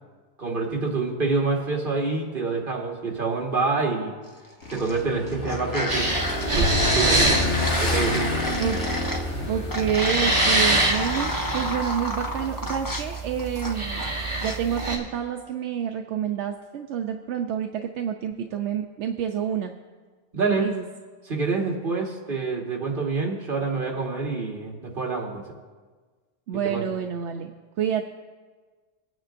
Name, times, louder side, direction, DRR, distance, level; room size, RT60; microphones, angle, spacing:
voice 1, 0.4-4.2 4.7-6.1 6.5-7.5 7.8-8.4 20.3-20.7 21.2-25.4 26.6-26.8, right 4 dB, 50° right, 0 dB, 1.8 m, -27 dB
sound 1, 4.4-5.0 5.3-9.2 9.7-14.1 14.4-15.0, left 1 dB, 20° left, 1.0 m, -31 dB
Motorcycle / Engine, 4.6-11.6, left 2 dB, 80° left, 1.8 m, -30 dB
sound 2, 5.9-15.0, right 2 dB, 25° right, 2.0 m, -26 dB
voice 2, 9.5-14.0 14.4-19.7 20.6-20.8 26.5-27.5 27.8-28.0, right 8 dB, 80° right, 4 dB, 0.9 m, -28 dB
23.0 x 9.1 x 2.5 m, 1.4 s
omnidirectional pair, 1.2 m